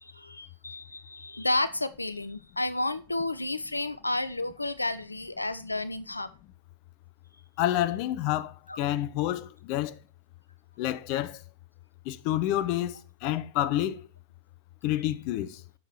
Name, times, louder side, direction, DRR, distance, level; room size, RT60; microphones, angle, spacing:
voice 1, 0.0-6.3 8.7-8.8, left 2 dB, 85° left, 0.4 m, -31 dB
voice 2, 7.6-9.9 10.8-11.4 12.1-13.0 13.2-14.0 14.8-15.6, left 13 dB, 45° left, 0.6 m, -28 dB
9.5 x 6.7 x 4.6 m
figure-of-eight pair, 90°, 0 cm